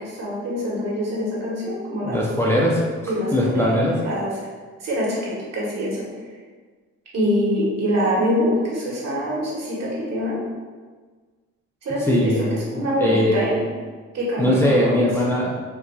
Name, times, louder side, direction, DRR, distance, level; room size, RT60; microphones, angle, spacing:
voice 1, 0.0-2.2 3.1-4.3 4.8-6.1 7.1-10.4 11.8-13.6 14.1-15.1, equal, 60° right, -5 dB, 1.4 m, -24 dB
voice 2, 2.0-3.9 12.1-13.5 14.4-15.5, left 1 dB, 10° left, -5 dB, 0.5 m, -21 dB
4.6 x 2.6 x 2.3 m, 1.4 s
cardioid pair, 90°, 30 cm